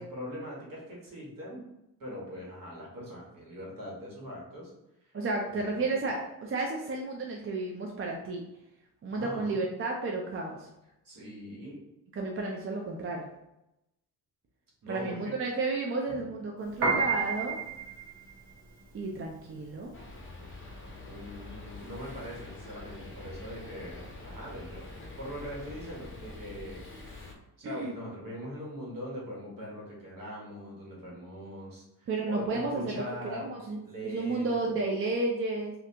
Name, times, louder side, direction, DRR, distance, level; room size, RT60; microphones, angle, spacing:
voice 1, 0.0-1.6 2.0-4.7 5.0-5.1 5.7-5.9 9.1-9.6 11.0-11.8 14.8-15.3 16.1-16.2 21.0-24.9 25.2-26.8 27.6-33.5 33.8-34.6, equal, 55° right, -4 dB, 1.4 m, -41 dB
voice 2, 5.1-8.4 9.0-10.7 12.2-13.3 14.9-17.6 18.9-19.9 27.6-27.9 32.1-33.8 34.0-35.7, right 3 dB, 35° right, 0 dB, 0.4 m, -32 dB
Piano, 16.7-27.1, right 5 dB, 90° right, 0.9 m, -35 dB
sound 1, 19.9-27.3, left 2 dB, 30° left, 0.6 m, -45 dB
3.2 x 2.5 x 2.8 m, 0.88 s
cardioid pair, 95°, 39 cm